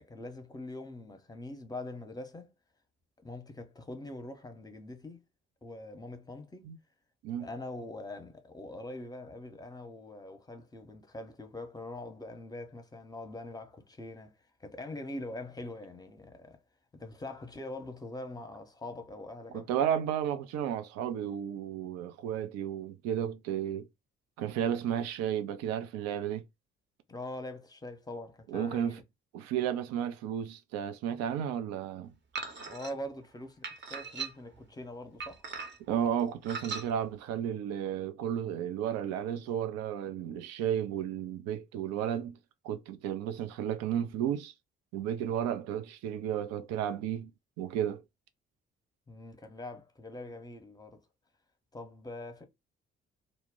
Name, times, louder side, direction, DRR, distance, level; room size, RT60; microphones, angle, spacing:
voice 1, 0.0-2.5 3.2-5.2 5.6-6.7 7.4-16.6 16.9-19.9 27.1-29.0 32.7-33.6 33.9-35.4 49.1-51.0 51.7-52.4, left 1 dB, 15° left, 0.8 m, -43 dB
voice 2, 19.5-23.9 24.4-26.4 28.5-28.9 29.3-32.1 35.9-42.4 42.6-44.5 44.9-47.3 47.6-48.0, right 9 dB, 60° right, 0.5 m, -33 dB
sound 1, 32.3-32.9 33.6-34.6 35.2-35.9 36.4-36.9, right 5 dB, 40° right, 0.8 m, -39 dB
2.2 x 2.0 x 3.6 m
hypercardioid pair, 45°, 30 cm